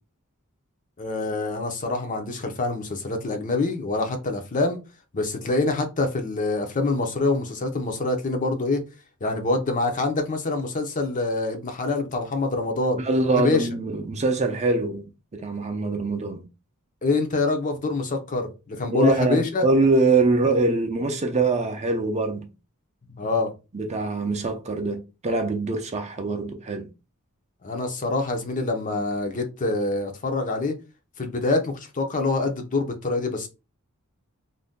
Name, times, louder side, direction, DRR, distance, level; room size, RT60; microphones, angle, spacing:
voice 1, 1.0-4.8 5.1-8.8 9.2-13.0 13.4-13.7 17.0-19.6 23.1-23.5 27.6-30.8 31.2-33.5, left 3 dB, 35° left, 0.6 m, -25 dB
voice 2, 13.0-16.4 18.9-22.5 23.7-26.9, right 3 dB, 30° right, 0.5 m, -23 dB
2.6 x 2.2 x 3.5 m
head